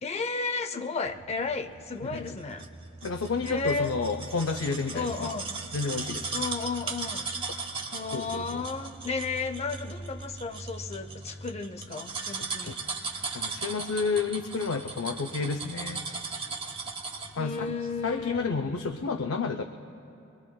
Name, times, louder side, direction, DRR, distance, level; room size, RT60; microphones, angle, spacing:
voice 1, 0.0-2.7 3.4-3.9 4.9-5.5 6.3-7.3 7.9-12.8 17.4-19.1, left 4 dB, 35° left, 7 dB, 0.6 m, -33 dB
sound 1, 1.0-18.9, right 1 dB, 45° right, 3.9 m, -47 dB
voice 2, 2.0-2.4 3.0-5.4 5.7-6.4 8.1-8.7 12.7-12.8 13.3-16.0 17.4-17.7 18.0-19.6, left 4 dB, 90° left, 6 dB, 0.5 m, -30 dB
sound 2, 2.3-17.4 17.8-17.9, right 4 dB, 25° right, 1.2 m, -37 dB
23.5 x 22.0 x 2.3 m, 2.8 s
head